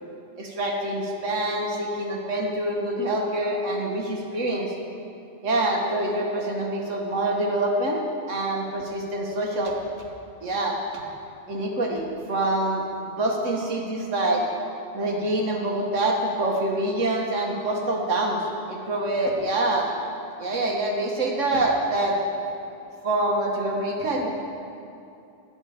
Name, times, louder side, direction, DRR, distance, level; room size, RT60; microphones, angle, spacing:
voice 1, 0.4-4.7 5.4-8.0 8.3-9.7 10.4-11.0 11.5-14.4 14.9-19.9 20.4-22.2 23.0-24.3, right 1 dB, 85° right, 0 dB, 1.9 m, -26 dB
13.0 x 6.3 x 8.7 m, 2.6 s
omnidirectional pair, 1.2 m